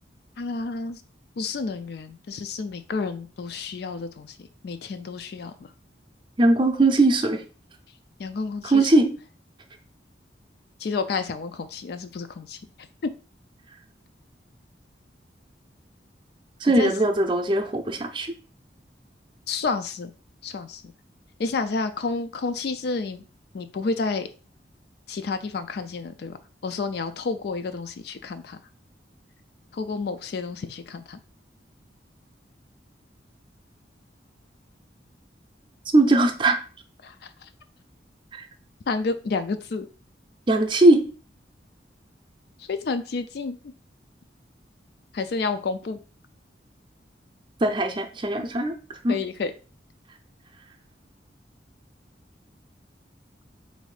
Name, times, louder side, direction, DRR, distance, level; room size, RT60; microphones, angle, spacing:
voice 1, 0.4-1.0 1.4-4.3 4.6-5.5 8.2-8.9 10.8-12.6 13.0-13.1 16.8-16.9 19.5-20.1 20.4-20.8 21.4-23.2 23.5-24.3 25.1-26.4 26.6-28.6 29.7-31.2 37.0-37.5 38.9-39.9 42.6-43.6 45.1-46.0 49.1-49.5, left 4 dB, 60° left, 9 dB, 0.4 m, -30 dB
voice 2, 6.4-7.4 8.6-9.1 16.6-18.3 35.9-36.6 38.3-38.5 40.5-41.0 47.6-48.7 49.0-49.2, right 2 dB, 25° right, 4 dB, 0.5 m, -20 dB
4.1 x 2.6 x 4.8 m, 0.36 s
head